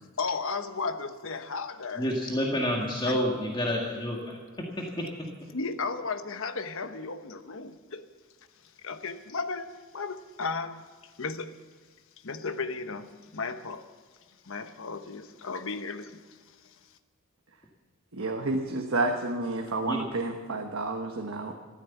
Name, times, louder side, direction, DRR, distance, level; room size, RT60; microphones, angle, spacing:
voice 1, 0.2-2.1 3.0-3.2 5.5-8.1 8.8-10.9 11.2-11.5 12.2-13.9 14.4-16.2, left 4 dB, 65° left, 1.1 m, -34 dB
voice 2, 2.0-5.3 19.8-20.0, equal, 20° left, 1.8 m, -29 dB
voice 3, 18.2-21.5, right 2 dB, 65° right, 1.3 m, -30 dB
14.5 x 13.5 x 7.2 m
head